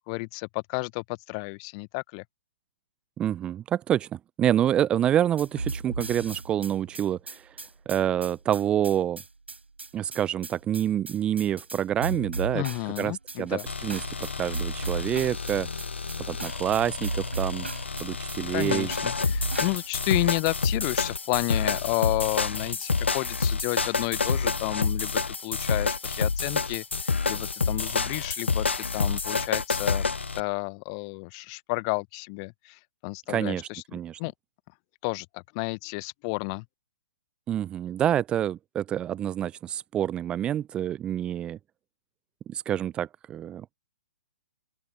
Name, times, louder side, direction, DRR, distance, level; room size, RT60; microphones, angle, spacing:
voice 1, 0.1-2.2 12.5-13.6 18.5-30.0 30.3-33.8 34.2-34.3 35.0-36.6, left 37 dB, 30° left, 0.8 m, -31 dB
voice 2, 3.2-7.5 7.9-9.2 9.9-12.6 13.0-14.0 14.4-15.7 16.3-17.7 18.0-18.9 33.3-34.2 37.5-41.6 42.5-43.7, right 10 dB, 15° right, 0.5 m, -27 dB
sound 1, 5.4-20.0, right 3 dB, 75° right, 4.0 m, -36 dB
sound 2, 13.7-30.4, left 4 dB, 70° left, 1.0 m, -29 dB
open air
figure-of-eight pair, 120°, 6 cm